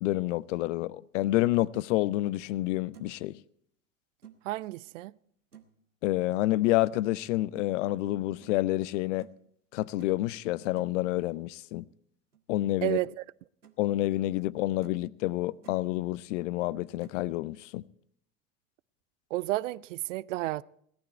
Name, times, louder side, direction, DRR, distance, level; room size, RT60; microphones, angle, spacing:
voice 1, 0.0-3.4 6.0-9.3 9.7-11.8 12.5-13.0 13.8-17.8, left 16 dB, 55° left, 0.5 m, -28 dB
sound 1, 1.7-1.9 2.4-2.5 2.9-3.2 4.2-4.4 5.5-5.8 7.5-7.7 8.4-8.6 9.2-9.4 10.0-10.2 10.8-11.0 12.3-12.4 12.8-13.1 13.4-13.8 14.3-14.4 14.8-15.1 15.4-15.8 17.0-17.2, right 9 dB, 90° right, 1.0 m, -54 dB
voice 2, 4.4-5.1 12.8-13.2 19.3-20.6, right 18 dB, 55° right, 0.5 m, -31 dB
17.0 x 12.0 x 4.4 m
figure-of-eight pair, 70°, 45 cm